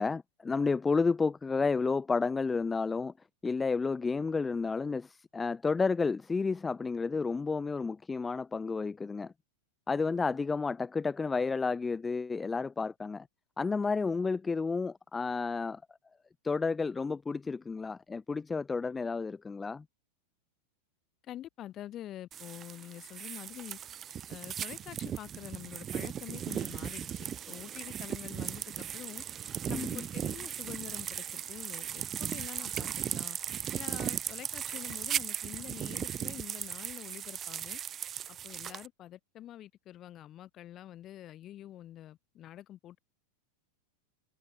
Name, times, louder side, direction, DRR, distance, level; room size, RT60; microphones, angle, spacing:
voice 1, 0.0-3.1 3.4-9.3 9.9-13.3 13.6-15.8 16.4-19.8 29.7-30.0, left 4 dB, 15° left, 0.6 m, -31 dB
voice 2, 21.2-23.8 24.3-29.2 29.7-33.4 33.7-37.8 38.3-43.0, left 12 dB, 30° left, 2.3 m, -46 dB
sound 1, 22.3-38.9, right 9 dB, 25° right, 1.5 m, -37 dB
figure-of-eight pair, 90°, 0 cm